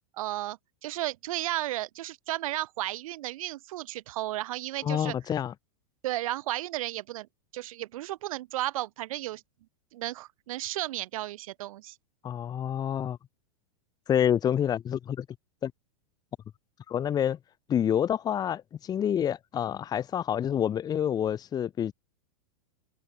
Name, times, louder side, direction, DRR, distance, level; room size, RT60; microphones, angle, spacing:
voice 1, 0.2-5.1 6.0-7.3 7.5-9.4 9.9-12.0, right 16 dB, 65° right, 5.7 m, -34 dB
voice 2, 4.8-5.5 12.2-13.2 14.1-15.3 15.6-15.7 16.9-17.4 17.7-21.9, left 9 dB, 20° left, 2.0 m, -28 dB
supercardioid pair, 150°, 19 cm